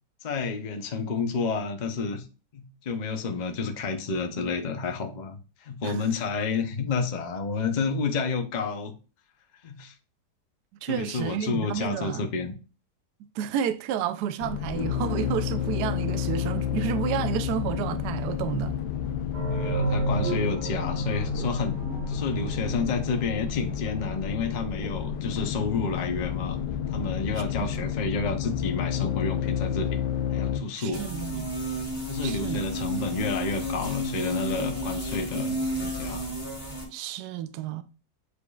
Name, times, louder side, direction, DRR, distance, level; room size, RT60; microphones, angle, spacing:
voice 1, 0.2-2.2 2.5-8.9 9.6-9.9 10.9-12.5 19.5-21.8 22.1-26.6 26.9-29.9 30.3-31.1 32.1-36.3, left 4 dB, 55° left, 0.5 m, -30 dB
voice 2, 10.8-12.3 13.3-18.7 27.7-27.9 30.8-31.5 32.2-32.6 36.9-37.8, right 9 dB, 75° right, 1.1 m, -31 dB
sound 1, 14.4-30.6, left 9 dB, 75° left, 1.3 m, -30 dB
sound 2, 19.3-23.9, right 2 dB, 60° right, 2.3 m, -31 dB
sound 3, 30.9-36.8, equal, 15° left, 2.0 m, -31 dB
8.2 x 5.0 x 2.4 m
omnidirectional pair, 1.9 m